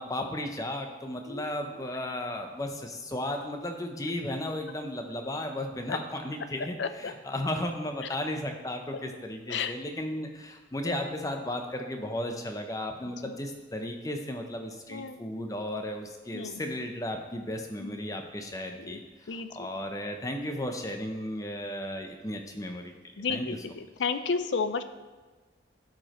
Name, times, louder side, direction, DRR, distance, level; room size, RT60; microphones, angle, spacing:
voice 1, 0.0-22.9 23.3-23.6, left 1 dB, 20° left, 4 dB, 0.6 m, -35 dB
voice 2, 6.8-7.1 9.5-9.7 14.9-15.2 16.3-16.6 17.8-18.0 18.8-19.0 19.3-19.7 23.2-24.8, left 5 dB, 80° left, 11 dB, 0.5 m, -32 dB
11.5 x 5.0 x 3.0 m, 1.3 s
head